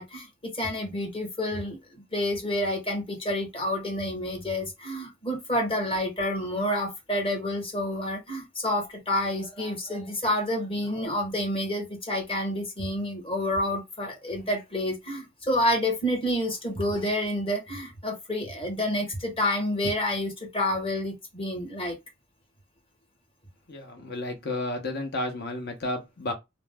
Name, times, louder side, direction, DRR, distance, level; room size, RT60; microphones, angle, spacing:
voice 1, 0.0-22.0, left 1 dB, 25° left, 1.1 m, -29 dB
voice 2, 23.7-26.3, left 2 dB, 55° left, 0.9 m, -32 dB
2.5 x 2.1 x 3.3 m
head